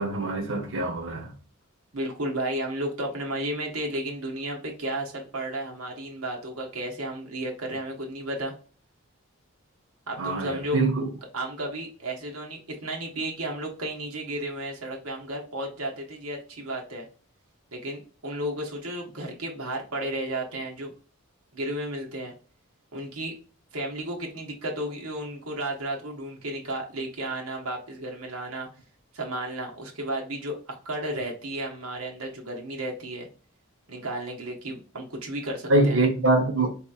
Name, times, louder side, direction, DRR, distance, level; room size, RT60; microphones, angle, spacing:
voice 1, 0.0-1.3 10.2-11.1 35.7-36.7, right 2 dB, 65° right, 1.1 m, -24 dB
voice 2, 1.9-8.5 10.1-10.8 11.3-17.1 17.7-20.9 21.5-22.3 22.9-23.3 23.7-28.7 29.1-33.3 33.9-36.0, right 1 dB, 85° right, 1.1 m, -33 dB
4.4 x 3.0 x 2.5 m
head